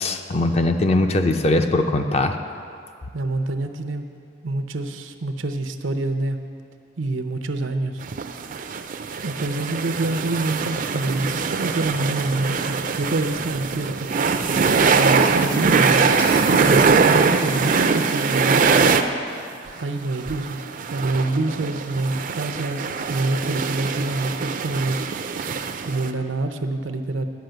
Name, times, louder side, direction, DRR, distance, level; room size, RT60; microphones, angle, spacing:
voice 1, 0.0-2.4, left 2 dB, 35° left, 6 dB, 0.5 m, -20 dB
voice 2, 3.1-4.0 4.4-6.4 7.0-8.0 8.6-8.7 9.2-14.1 14.9-16.1 16.9-19.0 19.8-20.6 20.9-25.0 25.8-27.3, right 2 dB, 85° right, 7 dB, 0.7 m, -26 dB
sound 1, 8.0-19.0 19.4-19.5 19.7-19.8 20.1-26.1, right 5 dB, 45° right, 0.4 m, -22 dB
sound 2, 16.2-18.0, right 2 dB, 75° left, 1.3 m, -37 dB
10.5 x 5.7 x 7.9 m, 2.4 s
head